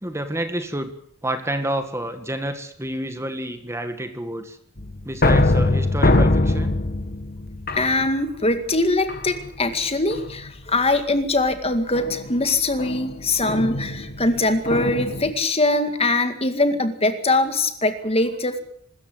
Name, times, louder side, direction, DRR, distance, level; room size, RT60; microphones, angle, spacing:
voice 1, 0.0-0.9 1.2-4.6 5.0-6.8, right 1 dB, 15° right, 8 dB, 1.8 m, -29 dB
sound 1, 4.8-8.5 9.1-9.6 10.1-10.5 11.9-15.3, left 2 dB, 45° left, 1.7 m, -23 dB
voice 2, 7.8-18.6, left 2 dB, 30° left, 8 dB, 2.1 m, -22 dB
24.5 x 14.0 x 8.1 m, 0.67 s
head